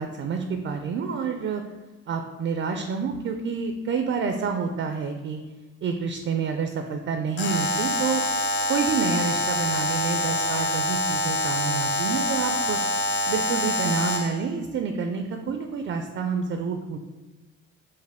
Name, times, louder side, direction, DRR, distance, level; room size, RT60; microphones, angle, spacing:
voice 1, 0.0-1.6 2.1-5.4 5.8-8.2 8.7-12.8 13.3-17.0, right 5 dB, 45° right, 6 dB, 0.4 m, -28 dB
Alarm, 7.4-14.4, left 1 dB, 40° left, 0.5 m, -26 dB
4.7 x 2.5 x 3.5 m, 1.2 s
cardioid pair, 90°, 30 cm